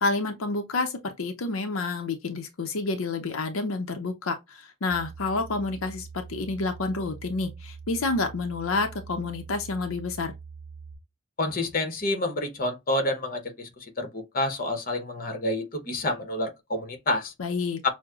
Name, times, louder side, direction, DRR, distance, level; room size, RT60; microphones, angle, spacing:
voice 1, 0.0-10.3 17.4-17.8, left 3 dB, 80° left, 0.6 m, -29 dB
sound 1, 4.9-11.0, right 5 dB, ahead, 1.9 m, -44 dB
voice 2, 11.4-13.7 14.0-17.3 17.8-17.9, left 1 dB, 40° left, 0.8 m, -28 dB
6.1 x 2.0 x 2.4 m
head